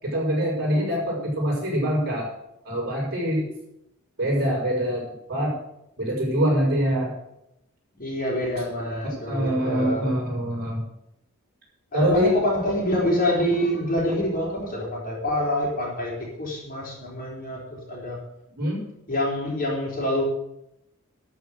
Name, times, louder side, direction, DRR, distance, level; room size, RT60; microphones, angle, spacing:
voice 1, 0.0-2.3 2.6-3.5 4.2-5.0 5.3-5.5 6.0-7.1 9.2-10.8 11.9-12.4 18.6-18.8, equal, 50° right, -3 dB, 6.1 m, -24 dB
voice 2, 8.0-10.1 11.9-16.1 16.4-18.2 19.1-20.2, left 1 dB, 40° left, -3 dB, 4.4 m, -26 dB
12.5 x 6.5 x 7.9 m, 0.82 s
head